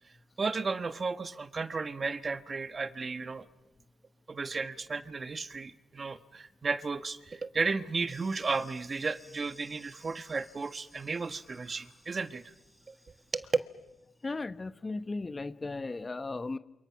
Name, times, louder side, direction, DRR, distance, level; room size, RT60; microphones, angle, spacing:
voice 1, 0.4-3.5 4.3-12.4 12.9-13.0 13.3-13.5, right 4 dB, 35° right, 1.4 m, -34 dB
sound 1, 8.1-14.2, equal, 5° right, 4.8 m, -59 dB
voice 2, 14.2-16.6, left 3 dB, 25° left, 1.1 m, -36 dB
28.5 x 28.0 x 6.0 m
cardioid pair, 90°, 0 cm